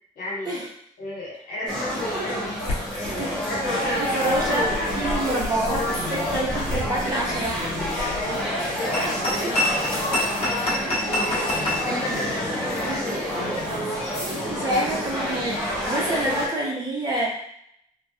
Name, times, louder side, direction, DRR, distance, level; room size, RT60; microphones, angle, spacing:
voice 1, 0.1-0.6 1.0-2.8 3.1-6.1 8.2-10.3 11.3-11.5 11.8-13.9 14.8-15.1 16.2-16.4, left 2 dB, 70° left, -4 dB, 1.3 m, -33 dB
sound 1, 1.7-16.5, equal, 5° left, 1.0 m, -28 dB
sound 2, 2.6-11.8, left 1 dB, 45° left, 1.0 m, -30 dB
voice 2, 3.9-5.8 6.1-7.6 9.4-9.6 11.2-11.4 11.9-12.2 12.8-13.2 14.5-17.3, right 1 dB, 30° right, -3 dB, 0.7 m, -27 dB
3.3 x 2.2 x 2.7 m, 0.70 s
cardioid pair, 160°, 14 cm